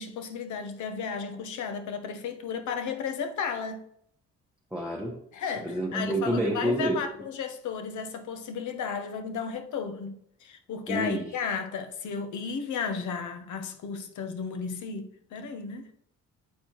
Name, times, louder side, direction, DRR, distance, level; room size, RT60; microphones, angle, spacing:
voice 1, 0.0-3.8 5.3-10.1 10.4-15.9, left 6 dB, 75° left, 0.9 m, -34 dB
voice 2, 4.7-5.2 5.6-7.0 10.9-11.3, right 1 dB, 5° right, 1.0 m, -28 dB
8.3 x 4.4 x 3.0 m
cardioid pair, 90°, 30 cm